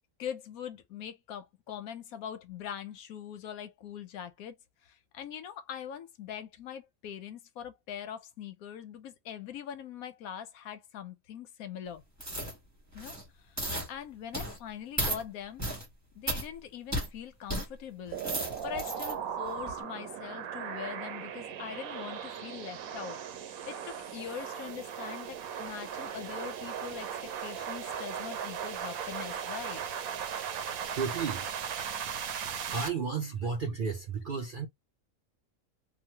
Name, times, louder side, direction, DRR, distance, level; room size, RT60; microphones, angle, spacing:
voice 1, 0.2-4.5 4.8-12.0 12.9-13.2 13.5-13.6 13.9-15.6 16.1-23.2 23.6-27.1 27.4-29.8 30.7-30.9, left 9 dB, 85° left, 1.1 m, -42 dB
sound 1, 12.2-12.6 12.9-13.2 13.6-13.9 14.3-14.6 15.0-15.2 15.6-15.9 16.3-16.5 16.9-17.1 17.5-17.7 18.1-19.1 19.6-19.7, right 1 dB, 15° right, 1.0 m, -34 dB
sound 2, 18.1-32.9, right 8 dB, 85° right, 1.1 m, -38 dB
voice 2, 30.5-31.5 32.7-34.7, right 5 dB, 60° right, 0.5 m, -33 dB
3.0 x 2.3 x 2.7 m
omnidirectional pair, 1.5 m